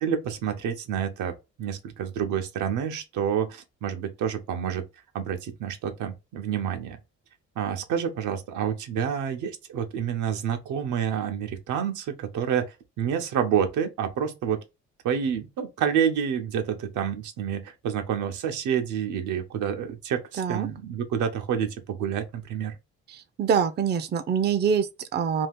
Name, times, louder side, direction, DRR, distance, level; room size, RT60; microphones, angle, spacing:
voice 1, 0.0-4.8 5.1-7.0 7.6-14.6 15.0-22.8, right 8 dB, 80° right, 0.7 m, -28 dB
voice 2, 20.4-20.7 23.1-25.5, right 7 dB, 35° right, 0.4 m, -25 dB
2.7 x 2.4 x 3.4 m
cardioid pair, 90°, 30 cm